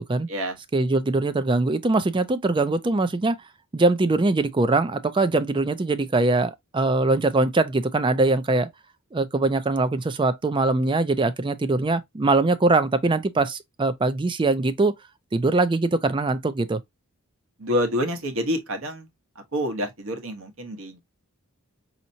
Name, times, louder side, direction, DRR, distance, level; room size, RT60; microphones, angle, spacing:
voice 1, 0.7-3.4 3.7-8.7 9.1-14.9 15.3-16.8, right 2 dB, 20° right, 0.4 m, -22 dB
voice 2, 17.6-19.1 19.5-21.0, equal, 60° right, 1.1 m, -27 dB
5.3 x 2.9 x 2.7 m
head